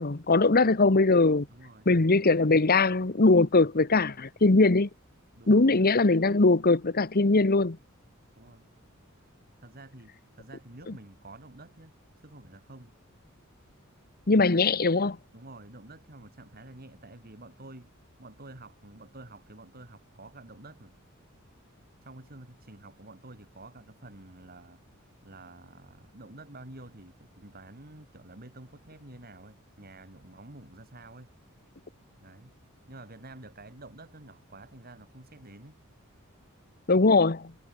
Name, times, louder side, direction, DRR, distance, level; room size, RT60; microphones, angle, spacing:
voice 1, 0.0-1.5 1.9-4.9 5.5-7.8 10.9-11.0 14.3-15.2 36.9-37.5, left 3 dB, 45° left, 1.1 m, -21 dB
voice 2, 1.5-1.9 5.3-5.7 8.4-8.7 9.6-12.9 15.3-17.9 18.2-21.0 22.0-31.3 32.2-32.5 32.9-35.8, right 2 dB, 45° right, 3.9 m, -49 dB
head